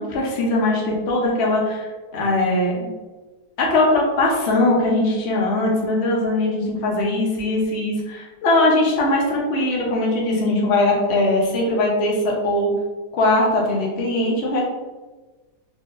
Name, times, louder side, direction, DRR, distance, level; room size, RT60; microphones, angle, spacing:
voice 1, 0.0-1.9 2.1-2.9 3.6-12.7 13.1-14.6, left 2 dB, 50° left, -3 dB, 0.9 m, -20 dB
3.9 x 2.8 x 2.5 m, 1.2 s
omnidirectional pair, 1.8 m